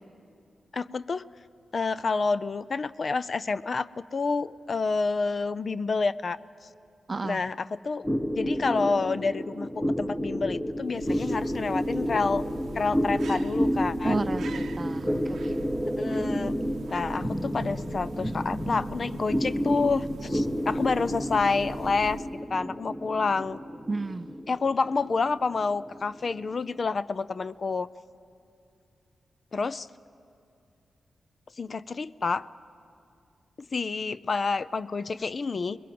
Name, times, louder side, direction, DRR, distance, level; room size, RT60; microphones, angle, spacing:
voice 1, 0.7-1.3 1.7-6.4 7.2-8.1 8.4-9.7 10.0-12.4 12.8-14.3 15.8-16.6 16.9-22.2 22.5-23.6 24.5-27.9 29.5-29.9 31.6-32.5 33.7-35.8, left 4 dB, 55° left, 16 dB, 0.5 m, -28 dB
voice 2, 7.1-7.4 14.0-15.5 23.9-24.4, right 3 dB, 40° right, 13 dB, 0.6 m, -32 dB
sound 1, 8.0-26.8, equal, 10° left, 1.2 m, -30 dB
sound 2, 10.7-22.5, right 4 dB, 85° right, 0.6 m, -42 dB
24.5 x 21.0 x 7.7 m, 2.5 s
cardioid pair, 60°, 0 cm